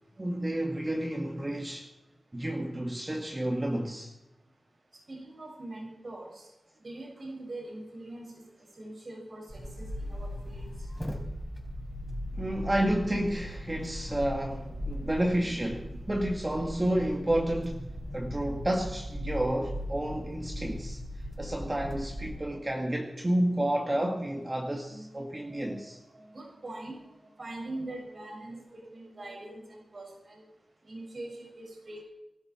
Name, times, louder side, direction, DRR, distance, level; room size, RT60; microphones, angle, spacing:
voice 1, 0.2-1.9 2.3-4.1 12.3-17.9 18.1-21.0 21.4-26.0, right 1 dB, 30° right, 2.1 m, -30 dB
voice 2, 5.1-6.5 6.8-8.4 8.8-10.7 14.4-16.0 16.4-16.5 22.4-22.8 23.5-23.8 24.9-27.0 27.4-30.4 30.8-32.1, right 2 dB, 60° right, 6.5 m, -43 dB
sound 1, 9.5-22.4, equal, ahead, 4.9 m, -38 dB
24.5 x 12.5 x 4.6 m
cardioid pair, 55°, 0 cm